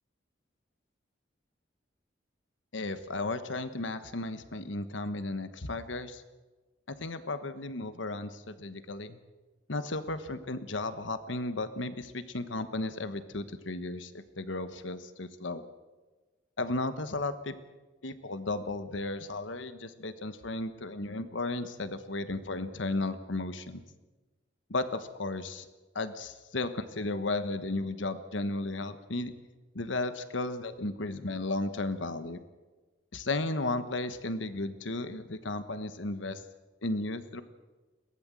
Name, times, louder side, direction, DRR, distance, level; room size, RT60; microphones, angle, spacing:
voice 1, 2.7-6.2 6.9-9.2 9.7-15.6 16.6-17.5 18.0-23.8 24.7-25.7 25.9-29.3 29.7-32.4 33.1-36.4 36.8-37.4, left 2 dB, 85° left, 11 dB, 1.3 m, -34 dB
22.0 x 17.5 x 7.6 m, 1.2 s
head